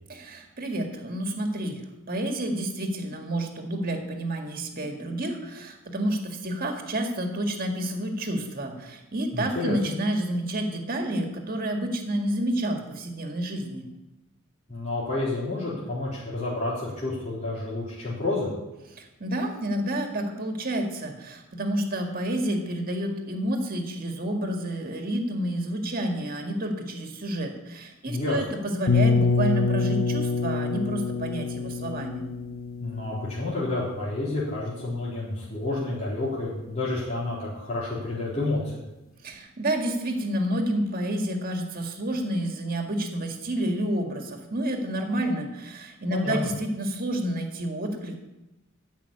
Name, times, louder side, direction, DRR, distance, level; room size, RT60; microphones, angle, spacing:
voice 1, 0.1-1.8 2.1-13.9 19.0-32.2 39.2-48.2, right 1 dB, 45° right, 4 dB, 2.0 m, -29 dB
voice 2, 9.3-9.7 14.7-18.5 28.1-28.6 32.8-38.8 46.1-46.5, left 2 dB, 35° left, -9 dB, 4.0 m, -30 dB
sound 1, 28.9-34.6, left 4 dB, 75° left, 1.2 m, -26 dB
14.0 x 5.9 x 8.5 m, 1.0 s
head